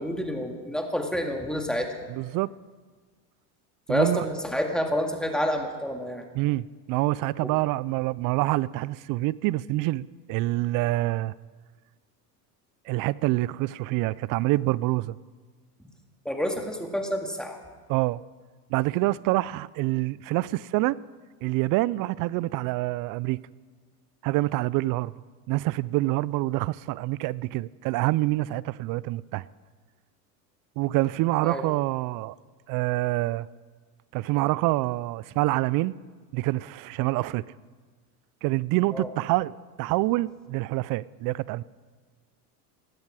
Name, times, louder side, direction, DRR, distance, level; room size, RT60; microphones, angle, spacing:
voice 1, 0.0-1.9 3.9-6.2 7.4-7.5 16.3-17.6 31.4-31.7 38.9-39.1, equal, ahead, 2.0 m, -28 dB
voice 2, 2.1-2.5 3.9-4.2 6.3-11.3 12.9-15.2 17.9-18.2 18.7-21.0 21.4-23.4 24.2-25.1 25.5-29.4 30.8-32.4 32.7-33.5 34.1-36.0 36.3-37.4 38.4-41.6, right 19 dB, 45° right, 0.4 m, -26 dB
17.5 x 12.5 x 4.9 m
supercardioid pair, 95°, 47 cm